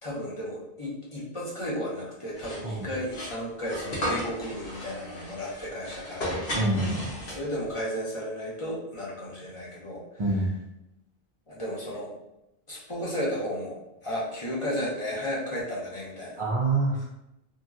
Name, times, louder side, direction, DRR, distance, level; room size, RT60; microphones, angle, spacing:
voice 1, 0.0-6.3 7.3-10.2 11.5-12.1 12.7-16.5, equal, 35° left, -6 dB, 0.8 m, -34 dB
sound 1, 2.3-7.7, equal, 60° left, 1.1 m, -35 dB
voice 2, 6.5-7.1 10.2-10.5 16.4-17.0, right 2 dB, 45° right, -4 dB, 0.4 m, -26 dB
3.0 x 2.7 x 2.4 m, 0.86 s
omnidirectional pair, 1.1 m